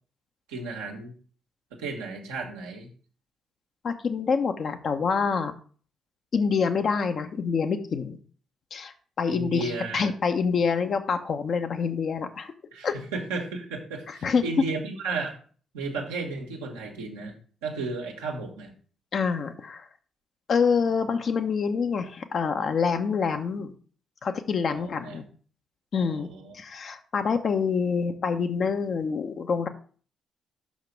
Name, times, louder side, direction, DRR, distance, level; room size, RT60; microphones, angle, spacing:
voice 1, 0.5-1.1 1.7-2.9 9.3-10.1 12.7-15.4 15.7-18.7 24.7-25.2 26.0-26.6, right 3 dB, 80° right, 0 dB, 1.3 m, -34 dB
voice 2, 3.8-5.5 6.3-8.2 8.7-12.5 12.8-12.9 14.2-14.4 19.1-19.9 20.5-23.7 24.2-25.2 25.9-29.7, left 5 dB, 55° left, 7 dB, 0.8 m, -26 dB
5.8 x 5.1 x 5.2 m, 0.43 s
hypercardioid pair, 45°, 0 cm